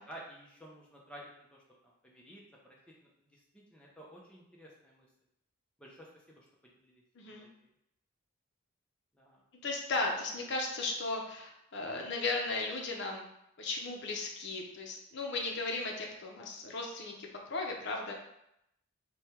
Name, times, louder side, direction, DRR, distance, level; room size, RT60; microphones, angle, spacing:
voice 1, 0.1-1.6 2.0-2.4 3.0-3.4 3.7-5.1 5.8-6.5 6.8-7.7 9.1-9.4, right 1 dB, 5° left, -4 dB, 0.6 m, -52 dB
voice 2, 9.6-13.2 13.6-18.1, left 3 dB, 50° left, 0 dB, 0.6 m, -36 dB
3.3 x 2.3 x 4.3 m, 0.79 s
head